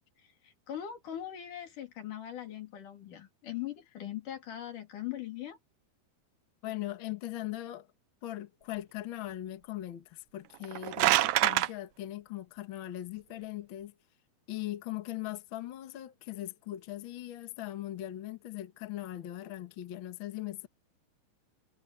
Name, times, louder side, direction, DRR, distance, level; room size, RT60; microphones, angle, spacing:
voice 1, 0.0-5.6, left 11 dB, 70° left, 4.2 m, -41 dB
voice 2, 6.6-7.9 8.2-13.9 14.5-20.7, left 14 dB, 55° left, 1.5 m, -40 dB
sound 1, 10.5-11.7, right 16 dB, 85° right, 2.3 m, -25 dB
omnidirectional pair, 3.8 m